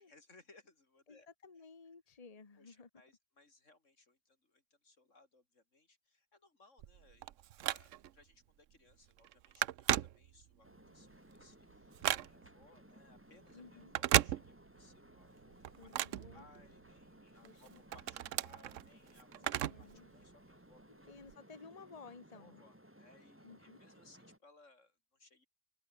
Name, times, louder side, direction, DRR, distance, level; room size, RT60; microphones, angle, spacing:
voice 1, 0.0-1.3 2.6-7.3 7.7-10.7 10.9-15.6 15.8-15.9 16.3-21.1 22.3-25.5, left 3 dB, 80° left, 4.1 m, -65 dB
voice 2, 1.1-2.9 13.5-13.9 15.8-16.5 17.4-17.8 19.6-20.1 21.1-22.6 23.4-23.8, left 4 dB, 30° left, 1.3 m, -55 dB
Telephone, 6.8-8.2 8.7-8.9 9.2-10.7 11.1-12.6 13.8-14.9 15.2-17.0 17.4-20.0 20.3-20.4 21.2-21.3, right 12 dB, 85° right, 1.0 m, -35 dB
sound 1, 10.6-24.4, right 1 dB, 10° right, 3.4 m, -61 dB
omnidirectional pair, 1.3 m